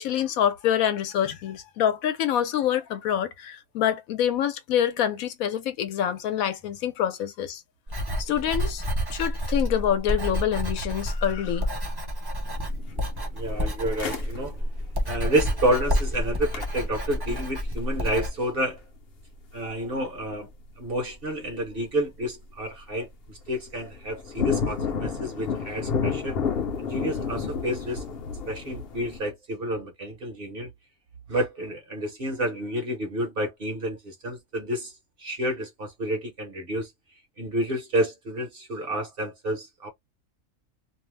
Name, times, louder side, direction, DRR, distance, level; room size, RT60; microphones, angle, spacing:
voice 1, 0.0-7.6 8.2-8.8 9.1-11.7, left 10 dB, 75° left, 1.1 m, -26 dB
Writing, 7.9-18.3, equal, 25° right, 0.5 m, -29 dB
sound 1, 12.5-20.5 20.8-20.9 21.5-21.8 22.2-22.6 23.0-23.1 23.3-29.2, left 6 dB, 55° left, 0.8 m, -32 dB
voice 2, 13.3-14.6 15.1-18.8 19.5-20.5 20.8-26.4 26.8-28.0 28.5-30.7 31.3-36.9 37.4-39.9, right 1 dB, 50° right, 0.8 m, -29 dB
2.6 x 2.0 x 3.2 m
omnidirectional pair, 1.5 m